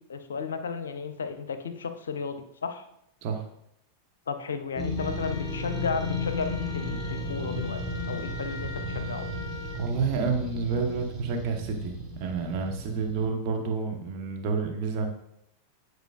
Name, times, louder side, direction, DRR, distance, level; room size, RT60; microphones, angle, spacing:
voice 1, 0.1-2.8 4.3-7.8 8.1-9.3, left 5 dB, 65° left, 9 dB, 0.6 m, -33 dB
sound 1, 4.7-13.3, left 1 dB, 15° right, 1.4 m, -34 dB
Wind instrument woodwind instrument, 5.0-9.9, left 4 dB, 45° left, 1.1 m, -42 dB
voice 2, 9.7-15.1, right 4 dB, 40° right, 2 dB, 1.0 m, -29 dB
9.0 x 4.7 x 2.4 m, 0.77 s
figure-of-eight pair, 90°, 0 cm